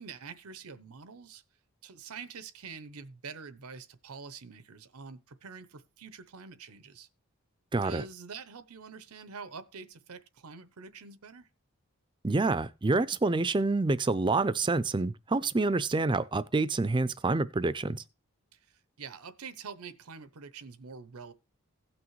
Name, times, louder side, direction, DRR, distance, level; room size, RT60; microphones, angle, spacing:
voice 1, 0.0-1.4 1.8-7.1 7.8-11.5 18.5-21.3, right 5 dB, 85° right, 0.8 m, -46 dB
voice 2, 7.7-8.0 12.2-18.0, right 3 dB, 20° right, 0.4 m, -27 dB
16.5 x 6.1 x 3.1 m
head